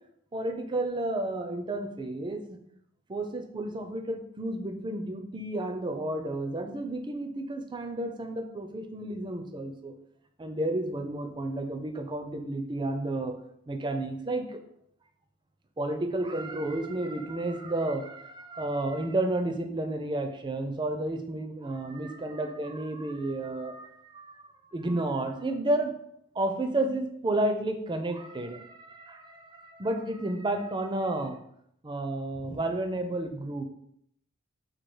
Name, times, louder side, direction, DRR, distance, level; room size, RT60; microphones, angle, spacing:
voice 1, 0.3-2.4 3.1-9.9 10.4-13.4 13.7-14.6 15.8-24.4 24.7-25.9 26.4-31.4 31.8-33.6, right 1 dB, 20° right, 6 dB, 0.4 m, -31 dB
4.4 x 2.3 x 4.7 m, 0.71 s
head